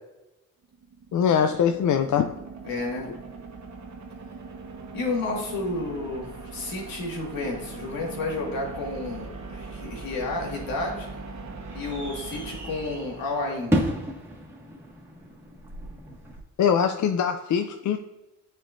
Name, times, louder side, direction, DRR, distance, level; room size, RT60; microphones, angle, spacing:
sound 1, 0.6-13.8, right 3 dB, 55° right, 1.1 m, -41 dB
voice 1, 1.1-2.3 16.6-18.0, left 7 dB, 55° left, 7 dB, 0.5 m, -22 dB
voice 2, 2.6-3.1 4.9-11.1 11.7-13.7, left 2 dB, 80° left, -1 dB, 1.9 m, -31 dB
sound 2, 11.3-16.4, equal, 5° right, 1.7 m, -33 dB
9.1 x 4.3 x 2.6 m, 1.0 s
cardioid pair, 75°, 34 cm